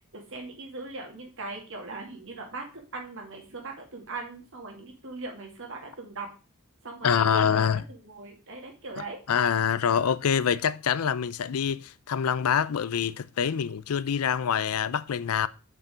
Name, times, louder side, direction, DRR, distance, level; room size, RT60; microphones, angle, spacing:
voice 1, 0.1-2.6 2.9-6.3 6.8-7.6 7.9-9.2, right 3 dB, 60° right, 2.4 m, -39 dB
voice 2, 7.0-7.8 9.3-15.5, left 7 dB, 80° left, 0.5 m, -25 dB
6.1 x 5.5 x 4.9 m
head